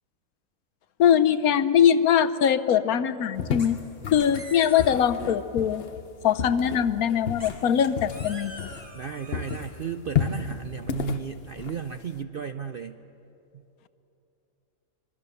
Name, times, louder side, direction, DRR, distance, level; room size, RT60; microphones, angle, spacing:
voice 1, 1.0-3.8 4.1-5.9 6.2-8.7, left 8 dB, 70° left, 13 dB, 1.2 m, -22 dB
sound 1, 3.4-9.1 9.3-12.2, left 7 dB, 45° left, 0.9 m, -32 dB
sound 2, 3.6-3.9 4.2-5.2 7.4-9.6, left 1 dB, 15° left, 2.6 m, -44 dB
voice 2, 8.9-13.0, right 7 dB, 60° right, 8 dB, 0.5 m, -34 dB
25.5 x 22.5 x 6.9 m, 2.9 s
omnidirectional pair, 1.7 m